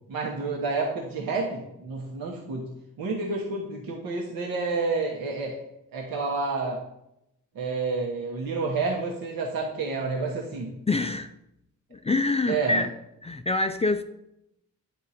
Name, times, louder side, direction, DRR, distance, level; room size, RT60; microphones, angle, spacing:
voice 1, 0.1-2.7 3.0-5.6 5.9-6.8 7.5-10.8 12.5-12.9, right 3 dB, 80° right, -2 dB, 1.1 m, -29 dB
voice 2, 10.9-11.3 11.9-12.9 13.2-14.0, left 3 dB, 20° left, 8 dB, 0.3 m, -25 dB
9.4 x 3.6 x 4.2 m, 0.85 s
cardioid pair, 50°, 34 cm